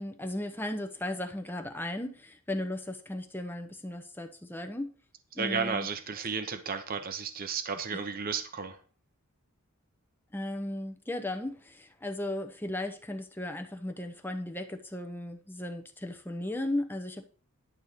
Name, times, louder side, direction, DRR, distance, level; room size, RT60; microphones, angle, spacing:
voice 1, 0.0-4.9 5.3-5.9 10.3-17.2, left 1 dB, 10° left, 6 dB, 0.9 m, -36 dB
voice 2, 5.3-8.8, right 5 dB, 40° right, 8 dB, 0.8 m, -33 dB
11.0 x 4.3 x 6.6 m, 0.41 s
head